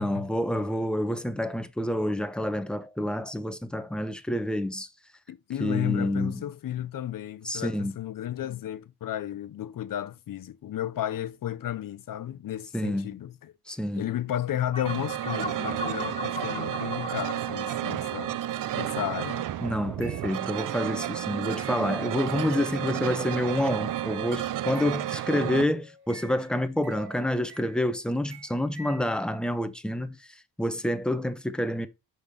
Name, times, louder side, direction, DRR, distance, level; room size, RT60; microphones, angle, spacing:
voice 1, 0.0-4.9 5.6-6.4 7.4-8.0 12.7-13.2 13.7-14.1 19.6-30.2 30.6-31.9, left 1 dB, ahead, 0.8 m, -28 dB
voice 2, 5.3-13.5 13.9-18.4 18.7-19.4, left 11 dB, 60° left, 0.7 m, -33 dB
sound 1, 14.7-19.6, left 1 dB, 15° left, 1.4 m, -38 dB
sound 2, 14.8-25.6, right 12 dB, 60° right, 0.5 m, -32 dB
sound 3, 18.4-24.3 24.8-28.0 28.3-29.0, right 3 dB, 90° right, 2.5 m, -50 dB
5.8 x 5.2 x 5.4 m
cardioid pair, 90°, 37 cm